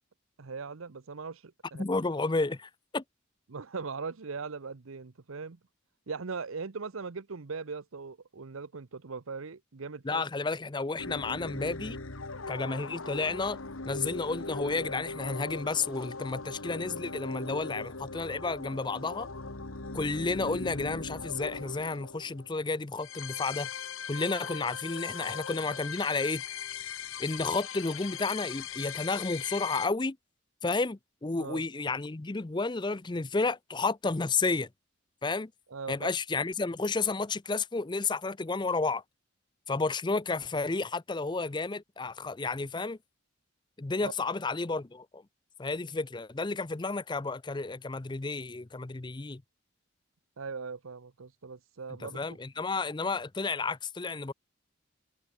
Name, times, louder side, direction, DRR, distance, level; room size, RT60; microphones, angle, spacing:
voice 1, 0.4-1.8 3.5-5.6 6.1-10.2 31.4-31.6 35.7-36.1 44.0-44.1 50.4-52.2, right 4 dB, 90° right, 0.8 m, -40 dB
voice 2, 1.8-3.0 10.0-12.0 12.5-13.6 13.9-19.3 19.9-23.7 24.1-26.4 27.2-30.2 30.6-34.7 35.2-35.5 35.9-39.0 39.7-43.0 43.8-45.2 45.6-49.4 52.0-54.3, left 3 dB, 20° left, 0.5 m, -31 dB
sound 1, 11.0-29.9, left 4 dB, 90° left, 2.1 m, -39 dB
head